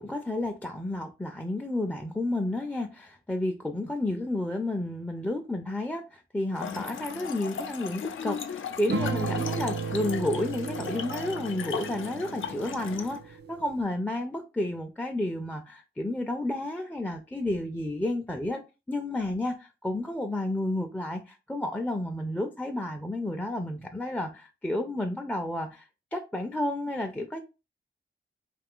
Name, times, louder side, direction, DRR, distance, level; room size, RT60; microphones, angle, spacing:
voice 1, 0.0-27.4, left 1 dB, 5° left, 0.4 m, -31 dB
Trickle dribble / Fill (with liquid), 6.5-13.2, left 6 dB, 80° left, 0.4 m, -37 dB
sound 1, 8.9-13.8, right 4 dB, 60° right, 0.4 m, -34 dB
2.6 x 2.4 x 3.5 m
cardioid pair, 60°, 20 cm